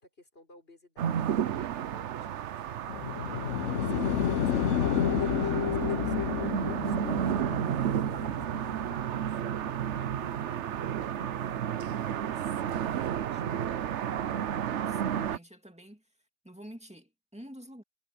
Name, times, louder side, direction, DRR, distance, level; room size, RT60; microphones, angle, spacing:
voice 1, 0.0-3.1 3.5-13.9, left 1 dB, 50° left, 6.5 m, -56 dB
sound 1, 1.0-15.4, right 9 dB, 65° right, 1.0 m, -32 dB
sound 2, 2.9-10.2 11.2-11.3, left 9 dB, 70° left, 1.1 m, -31 dB
voice 2, 14.6-16.1 16.4-17.8, equal, 5° right, 2.4 m, -48 dB
omnidirectional pair, 1.3 m